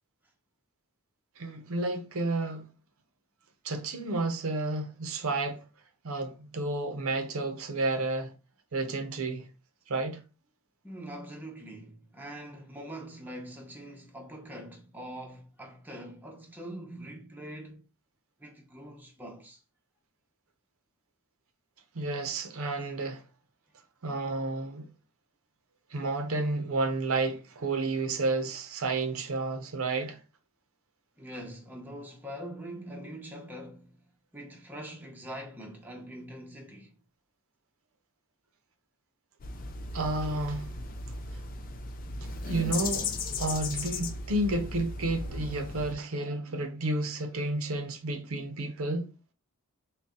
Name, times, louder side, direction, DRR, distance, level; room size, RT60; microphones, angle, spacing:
voice 1, 1.4-2.7 3.6-5.6 6.0-8.3 8.7-9.5 9.9-10.2 21.9-23.2 24.0-24.9 25.9-30.2 39.9-40.7 42.4-43.1 43.4-49.0, right 2 dB, 80° right, 0.6 m, -31 dB
voice 2, 10.8-17.8 18.4-19.6 31.2-34.0 34.3-37.0, right 1 dB, 10° right, 0.7 m, -43 dB
sound 1, 39.4-45.9, left 3 dB, 40° left, 0.4 m, -36 dB
3.9 x 2.2 x 3.5 m
head